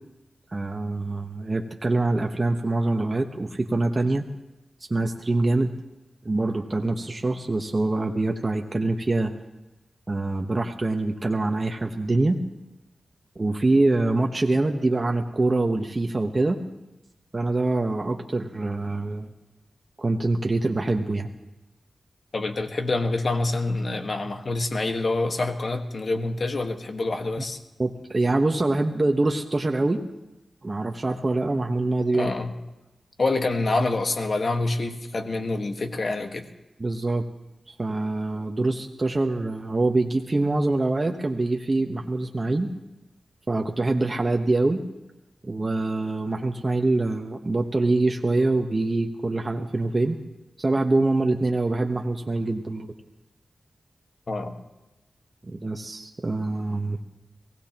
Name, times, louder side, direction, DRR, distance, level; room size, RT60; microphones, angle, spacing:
voice 1, 0.5-4.2 4.9-5.7 6.2-9.3 10.1-12.4 13.3-16.6 17.3-19.3 20.0-21.3 27.8-30.0 30.6-32.3 36.8-37.2 37.7-42.7 43.5-44.8 45.4-50.2 50.6-52.9 55.4-57.0, right 2 dB, 40° right, 3 dB, 1.2 m, -24 dB
voice 2, 22.3-27.6 32.1-32.5 33.2-36.5 54.3-54.5, left 2 dB, 60° left, 6 dB, 1.6 m, -26 dB
23.0 x 17.0 x 3.0 m, 1.0 s
cardioid pair, 40°, 0 cm